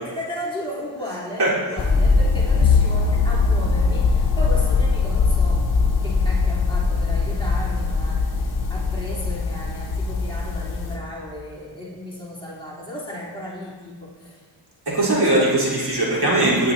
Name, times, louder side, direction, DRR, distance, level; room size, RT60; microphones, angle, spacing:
voice 1, 0.0-5.7 6.0-8.4 8.7-14.4 14.9-15.5, left 1 dB, 10° left, -8 dB, 3.4 m, -35 dB
sound 1, 1.8-11.0, left 4 dB, 55° left, 2.0 m, -21 dB
Bowed string instrument, 2.6-6.8, left 7 dB, 75° left, 0.6 m, -27 dB
voice 2, 14.9-16.7, right 1 dB, 60° right, -6 dB, 4.0 m, -19 dB
18.0 x 10.0 x 2.8 m, 1.4 s
wide cardioid pair, 120°, 45 cm